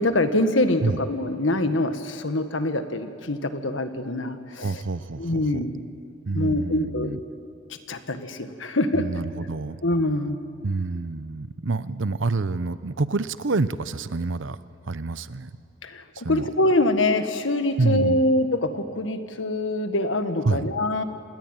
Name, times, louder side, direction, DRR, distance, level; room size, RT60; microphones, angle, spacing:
voice 1, 0.0-4.7 5.2-5.7 6.3-7.1 7.9-9.1 9.8-10.4 15.8-21.0, left 1 dB, 75° left, 8 dB, 1.6 m, -24 dB
voice 2, 4.6-5.6 6.3-7.2 8.9-9.8 10.6-14.6 14.9-15.5 16.1-16.5 17.8-18.2 20.4-20.7, right 3 dB, 75° right, 14 dB, 0.8 m, -27 dB
27.0 x 19.5 x 9.0 m, 2.7 s
head